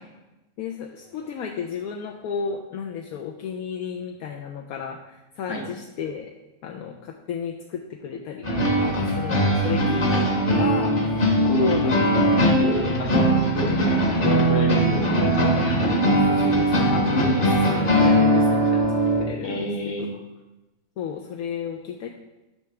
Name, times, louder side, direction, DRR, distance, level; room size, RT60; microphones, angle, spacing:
voice 1, 0.6-6.3 6.6-8.5 8.8-11.2 11.4-12.3 13.0-13.2 16.1-20.2 21.0-22.1, left 7 dB, 75° left, 2 dB, 1.0 m, -33 dB
sound 1, 8.4-19.3, right 1 dB, 40° left, 1.3 m, -20 dB
voice 2, 11.5-11.9 12.6-15.6 17.1-17.5 19.4-20.1, left 1 dB, 55° left, 1 dB, 1.5 m, -28 dB
10.5 x 5.8 x 3.3 m, 1.0 s
omnidirectional pair, 1.6 m